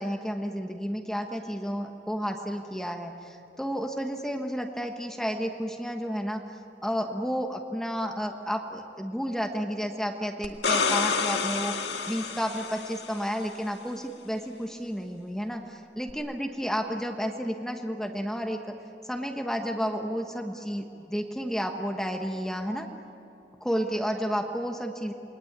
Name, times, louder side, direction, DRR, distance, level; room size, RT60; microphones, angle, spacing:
voice 1, 0.0-18.6 19.0-22.9 23.6-25.1, equal, 5° left, 3 dB, 1.3 m, -31 dB
sound 1, 10.4-13.3 16.1-16.2, left 5 dB, 70° left, 2.0 m, -28 dB
28.5 x 21.5 x 8.8 m, 2.9 s
head